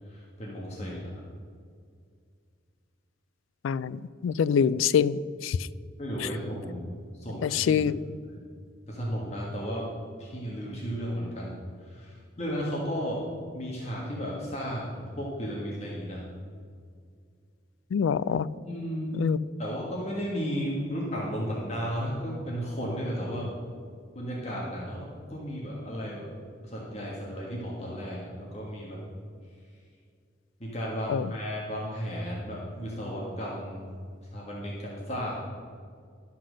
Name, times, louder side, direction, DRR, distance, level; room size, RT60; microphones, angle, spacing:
voice 1, 0.1-1.1 6.0-7.9 8.3-8.4 8.9-9.9 10.2-13.2 13.5-16.2 18.7-19.2 19.6-23.5 24.1-26.3 26.6-29.0 30.6-33.9 34.3-35.4, equal, 35° left, -4 dB, 1.6 m, -34 dB
voice 2, 3.6-5.6 6.2-6.3 7.4-8.0 17.9-18.5 19.2-19.4 31.1-31.3, left 7 dB, 80° left, 18 dB, 0.3 m, -25 dB
11.5 x 5.9 x 6.3 m, 2.1 s
head